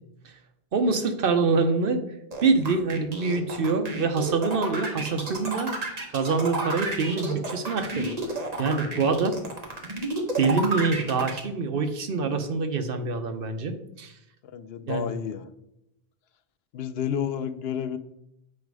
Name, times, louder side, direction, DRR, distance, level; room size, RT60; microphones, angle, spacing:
voice 1, 0.7-2.0 2.4-9.4 10.4-14.1 14.9-15.1, right 4 dB, 65° right, 7 dB, 0.9 m, -25 dB
sound 1, 2.3-11.4, right 2 dB, 40° right, 1.2 m, -31 dB
voice 2, 14.4-15.5 16.7-18.0, left 8 dB, 75° left, 11 dB, 0.8 m, -30 dB
7.4 x 5.0 x 4.7 m, 0.84 s
omnidirectional pair, 1.0 m